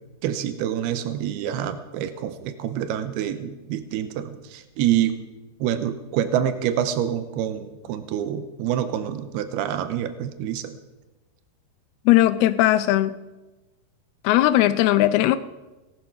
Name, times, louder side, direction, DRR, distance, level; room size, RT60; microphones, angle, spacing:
voice 1, 0.2-5.1 5.6-10.8, right 10 dB, 90° right, 10 dB, 2.7 m, -26 dB
voice 2, 12.1-13.1 14.2-15.4, left 14 dB, 85° left, 13 dB, 2.6 m, -18 dB
18.0 x 11.5 x 5.9 m, 1.1 s
omnidirectional pair, 4.5 m